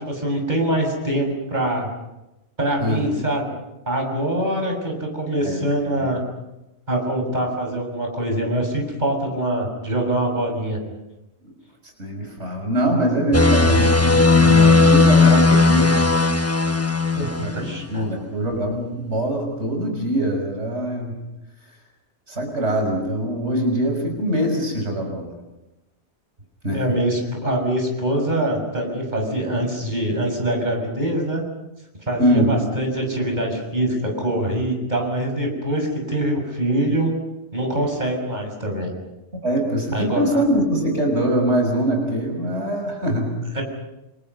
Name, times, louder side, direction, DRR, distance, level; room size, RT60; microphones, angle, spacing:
voice 1, 0.0-1.9 2.6-3.5 3.9-6.2 6.9-10.8 17.1-17.3 17.5-18.0 26.7-31.4 32.1-37.1 37.5-38.9 39.9-40.4 43.5-43.6, right 1 dB, 40° right, 1 dB, 6.7 m, -24 dB
voice 2, 11.8-15.9 17.3-21.2 22.3-25.3 26.6-26.8 32.2-32.5 39.4-43.4, right 1 dB, 85° right, 2 dB, 6.1 m, -23 dB
sound 1, 13.3-17.8, left 3 dB, 15° left, 1.1 m, -16 dB
29.5 x 27.5 x 5.6 m, 0.97 s
omnidirectional pair, 1.1 m